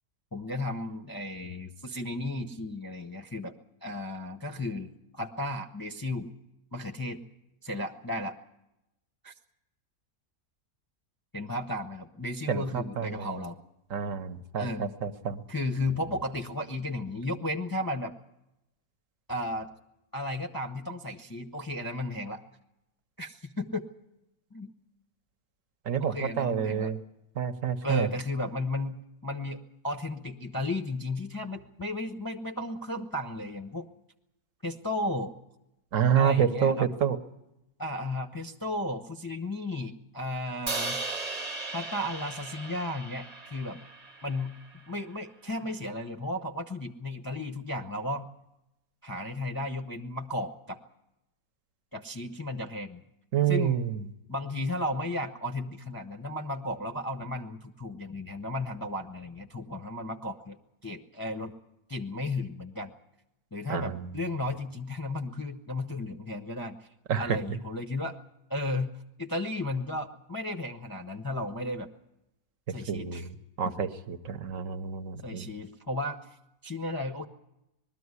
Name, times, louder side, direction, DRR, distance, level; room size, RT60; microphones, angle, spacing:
voice 1, 0.3-3.5 3.8-6.3 6.7-7.2 7.6-8.4 9.2-9.3 11.3-13.6 14.6-14.9 15.5-18.1 19.3-19.7 20.1-22.4 23.2-23.9 24.5-24.7 26.0-26.9 27.8-33.9 34.6-35.3 36.1-36.9 37.8-41.0 41.7-43.8 44.2-44.6 44.9-48.3 49.0-50.8 51.9-53.0 53.5-53.8 54.3-60.6 60.8-61.5 61.9-62.9 63.5-66.9 67.2-68.2 68.5-71.9 72.7-73.3 75.2-76.3 76.6-77.3, left 1 dB, 20° left, 4 dB, 0.6 m, -34 dB
voice 2, 12.5-13.3 13.9-15.4 25.9-27.0 27.4-28.1 35.9-37.2 53.3-54.0 63.7-64.1 67.1-67.6 72.9-75.5, right 8 dB, 60° right, 8 dB, 1.2 m, -28 dB
Crash cymbal, 40.7-44.9, right 3 dB, 35° right, 0.8 m, -37 dB
20.5 x 13.5 x 9.5 m, 0.89 s
omnidirectional pair, 1.6 m